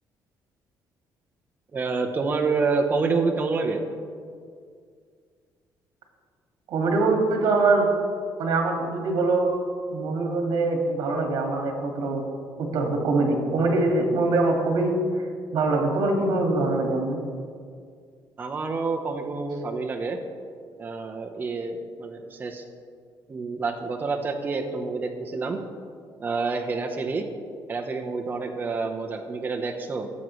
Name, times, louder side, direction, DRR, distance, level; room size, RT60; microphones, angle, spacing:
voice 1, 1.7-3.8 18.4-20.2 20.8-22.6 23.3-25.6 26.2-27.3 27.7-30.1, right 4 dB, 25° right, 3 dB, 0.9 m, -28 dB
voice 2, 6.7-7.9 8.4-9.5 9.9-12.2 12.6-15.0 15.5-17.2, right 3 dB, 70° right, 1 dB, 2.0 m, -23 dB
16.0 x 7.6 x 3.2 m, 2.1 s
cardioid pair, 140°, 8 cm